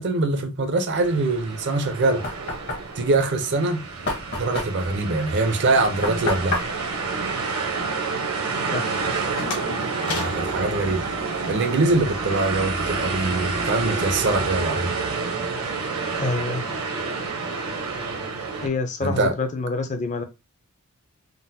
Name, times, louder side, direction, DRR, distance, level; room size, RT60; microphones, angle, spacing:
voice 1, 0.0-2.3 2.9-3.8 4.4-6.6 10.0-11.1 11.5-14.9 19.0-19.4, right 2 dB, 50° right, 0.5 m, -23 dB
sound 1, 0.9-18.7, right 4 dB, 75° right, 0.9 m, -29 dB
Knock, 1.7-8.2, left 2 dB, 50° left, 1.0 m, -32 dB
sound 2, 8.9-11.7, left 4 dB, 75° left, 1.0 m, -36 dB
voice 2, 16.2-16.7 18.6-20.2, left 3 dB, 30° left, 0.5 m, -27 dB
3.8 x 2.1 x 2.7 m
head